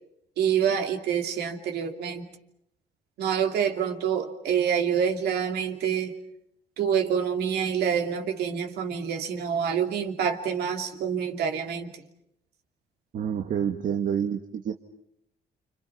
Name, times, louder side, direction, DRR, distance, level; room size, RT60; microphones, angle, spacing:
voice 1, 0.4-2.3 3.2-6.2 6.8-11.9, right 8 dB, 70° right, 5 dB, 2.9 m, -27 dB
voice 2, 13.1-14.7, right 8 dB, 55° right, 5 dB, 1.5 m, -28 dB
29.5 x 27.0 x 5.8 m, 0.76 s
cardioid pair, 110°, 17 cm